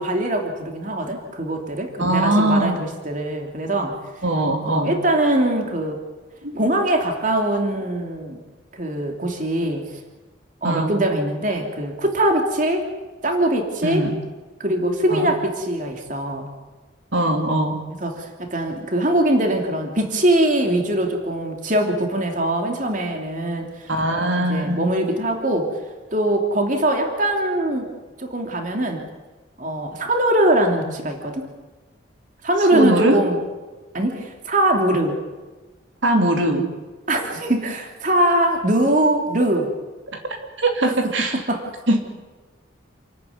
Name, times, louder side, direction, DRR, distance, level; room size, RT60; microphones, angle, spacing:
voice 1, 0.0-4.0 4.6-6.0 6.5-8.4 8.7-9.8 10.6-12.8 13.2-14.1 14.6-16.5 18.0-25.7 26.1-27.9 28.2-29.1 29.6-31.5 32.4-33.4 33.9-35.2 37.1-39.7 40.8-41.6, right 1 dB, 40° right, 3 dB, 3.0 m, -22 dB
voice 2, 2.0-2.8 4.2-4.9 6.4-6.5 10.6-10.9 13.8-14.2 15.1-15.3 17.1-17.9 23.9-24.8 32.7-33.2 36.0-36.7 40.6-41.4 41.9-42.0, right 1 dB, 70° right, 3 dB, 3.0 m, -21 dB
28.5 x 13.5 x 9.6 m, 1.3 s
head